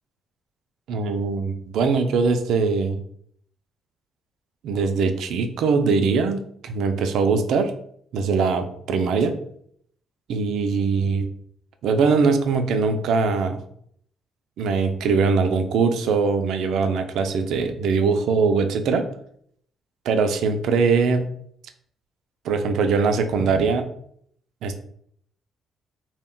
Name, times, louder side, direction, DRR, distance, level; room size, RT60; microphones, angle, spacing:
voice 1, 0.9-3.0 4.6-7.7 8.1-9.4 10.3-11.2 11.8-13.6 14.6-19.1 20.1-21.2 22.4-23.9 24.6-24.8, right 4 dB, 80° right, 7 dB, 0.3 m, -21 dB
2.1 x 2.1 x 3.6 m, 0.66 s
cardioid pair, 90°, 0 cm